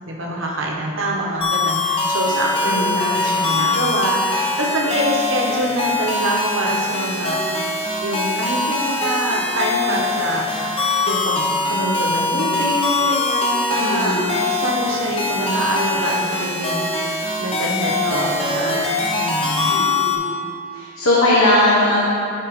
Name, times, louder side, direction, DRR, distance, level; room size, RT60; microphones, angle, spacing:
voice 1, 0.0-7.5 8.0-18.8 19.1-19.7, right 1 dB, 60° right, -2 dB, 1.1 m, -25 dB
sound 1, 1.4-20.2, left 3 dB, 25° left, 0.8 m, -22 dB
voice 2, 2.7-3.1 13.8-14.4 18.0-18.2 18.6-18.9 19.7-20.4 20.7-22.0, left 1 dB, 75° left, -6 dB, 1.1 m, -20 dB
12.5 x 4.4 x 3.6 m, 2.5 s
head